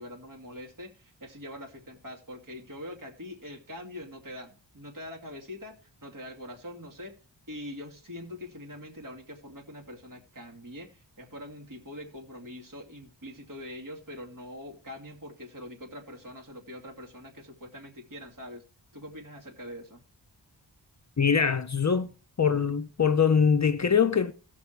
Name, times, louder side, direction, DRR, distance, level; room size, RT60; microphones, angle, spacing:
voice 1, 0.0-7.1 7.5-18.6 18.9-20.0, left 1 dB, 45° right, 2.5 m, -43 dB
voice 2, 21.2-22.1 22.4-24.3, left 6 dB, 40° left, 0.6 m, -23 dB
16.5 x 6.1 x 4.5 m
wide cardioid pair, 90°, 44 cm